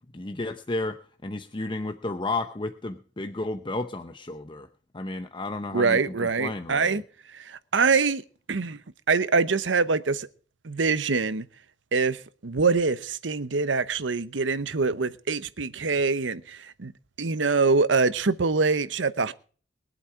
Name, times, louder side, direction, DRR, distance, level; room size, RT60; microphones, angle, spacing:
voice 1, 0.1-4.7 4.9-7.0, left 2 dB, 25° left, 0.7 m, -32 dB
voice 2, 5.7-7.0 7.5-8.2 8.5-8.8 9.1-10.3 10.6-11.5 11.9-16.9 17.2-19.3, right 4 dB, 90° right, 0.9 m, -24 dB
21.5 x 8.2 x 4.8 m
head